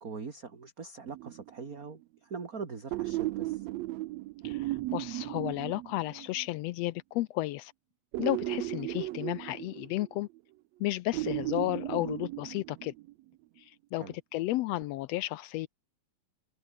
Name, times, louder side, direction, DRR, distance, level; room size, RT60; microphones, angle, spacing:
voice 1, 0.0-3.7 14.0-14.2, right 5 dB, 30° right, 2.7 m, -42 dB
sound 1, 1.1-1.8 2.9-6.5 8.1-10.4 11.1-13.1 14.8-14.9, right 18 dB, 75° right, 1.7 m, -36 dB
voice 2, 4.4-7.7 8.2-10.3 10.8-12.9 13.9-14.1 14.3-15.7, left 16 dB, 80° left, 1.5 m, -33 dB
omnidirectional pair, 3.4 m